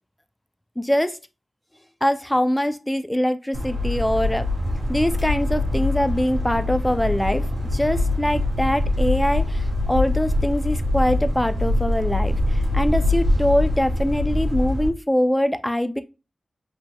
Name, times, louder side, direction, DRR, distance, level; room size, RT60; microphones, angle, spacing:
voice 1, 0.8-1.2 2.0-4.4 4.9-7.4 7.7-16.0, equal, 10° left, 0.4 m, -23 dB
sound 1, 3.5-14.9, left 1 dB, 60° right, 2.0 m, -23 dB
5.0 x 3.6 x 2.2 m
wide cardioid pair, 75°, 0 cm